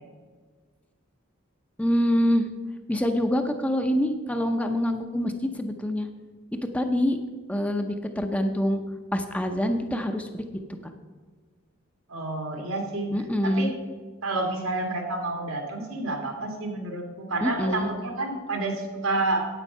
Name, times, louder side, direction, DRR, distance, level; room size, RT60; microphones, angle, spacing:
voice 1, 1.8-2.5 2.9-6.1 6.7-7.2 7.5-8.8 9.1-10.4 10.8-10.9 13.1-13.7 17.4-17.9, equal, 5° left, 5 dB, 0.6 m, -25 dB
voice 2, 12.1-13.7 14.2-19.5, right 2 dB, 90° right, 2 dB, 2.1 m, -29 dB
9.1 x 8.6 x 5.5 m, 1.5 s
head